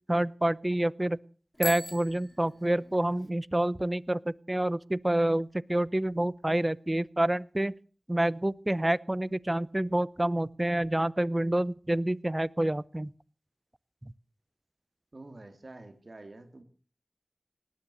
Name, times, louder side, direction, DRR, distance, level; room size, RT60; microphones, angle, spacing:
voice 1, 0.1-1.2 1.6-7.7 8.1-13.1, right 1 dB, 25° right, 20 dB, 0.7 m, -28 dB
Bicycle bell, 1.5-3.3, equal, 10° left, 2.7 m, -40 dB
voice 2, 15.1-16.6, right 2 dB, 55° right, 6 dB, 2.7 m, -47 dB
18.5 x 10.0 x 7.7 m, 0.43 s
wide cardioid pair, 45°, 0 cm